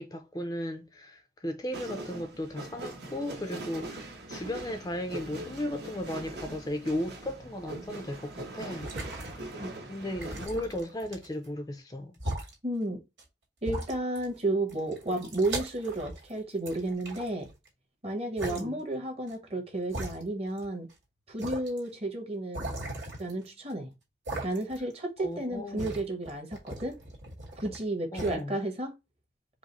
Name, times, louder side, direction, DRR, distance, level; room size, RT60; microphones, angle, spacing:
voice 1, 0.0-8.9 9.3-9.5 9.9-12.1 18.5-18.8 25.2-26.0 28.1-28.6, left 1 dB, 20° left, 0.4 m, -36 dB
sound 1, 1.7-10.5, right 2 dB, 60° right, 1.1 m, -42 dB
sound 2, 8.6-9.7 10.2-11.5 12.1-12.5 13.2-13.3 13.6-14.4 14.7-16.3 16.7-17.7 18.4-18.6 19.3-19.4 19.9-20.7 20.9-21.0 21.4-21.8 22.5-23.7 24.3-24.9 25.2-27.8 28.2-28.4, right 1 dB, 80° right, 1.9 m, -39 dB
voice 2, 12.6-13.0 13.6-17.5 18.0-20.9 21.3-22.7 23.2-23.9 24.4-27.0 27.6-29.0, right 2 dB, 35° right, 1.1 m, -32 dB
4.8 x 2.0 x 4.0 m
head